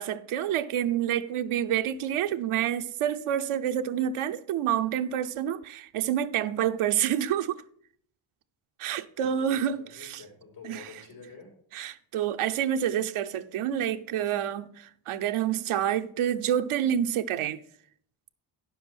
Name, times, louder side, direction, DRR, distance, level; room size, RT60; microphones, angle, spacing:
voice 1, 0.0-7.6 8.8-10.2 10.6-10.9 11.7-17.6, right 10 dB, 80° right, 0.7 m, -28 dB
voice 2, 9.2-11.5, left 5 dB, 90° left, 4.5 m, -48 dB
9.7 x 7.2 x 4.3 m
cardioid pair, 75°, 49 cm